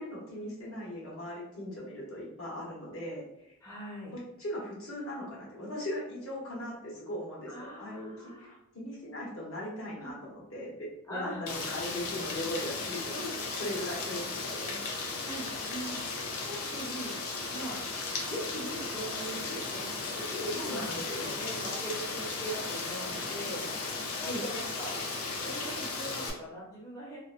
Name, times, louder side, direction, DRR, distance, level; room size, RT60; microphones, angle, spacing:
voice 1, 0.0-3.5 4.4-13.2 13.6-14.8 20.5-21.4 24.2-24.4, left 1 dB, 70° left, -6 dB, 1.0 m, -39 dB
voice 2, 3.6-4.1 7.5-8.6 10.0-10.1 11.1-11.4 13.1-13.3 15.2-17.2 17.5-17.8 18.3-19.9 20.1-25.0 25.4-27.2, equal, 15° left, -6 dB, 0.5 m, -41 dB
Rain, 11.5-26.3, left 3 dB, 85° left, 0.5 m, -36 dB
2.8 x 2.1 x 2.4 m, 0.83 s
head